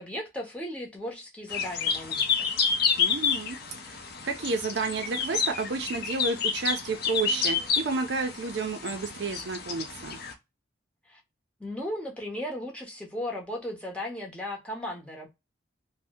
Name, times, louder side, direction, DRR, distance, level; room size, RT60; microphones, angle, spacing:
voice 1, 0.0-2.5 11.1-11.2 11.6-15.3, left 1 dB, 5° left, 0.8 m, -36 dB
sound 1, 1.5-10.3, left 6 dB, 55° left, 0.6 m, -29 dB
voice 2, 3.0-3.6 3.9-10.2, right 4 dB, 60° right, 0.5 m, -31 dB
2.7 x 2.0 x 3.4 m
head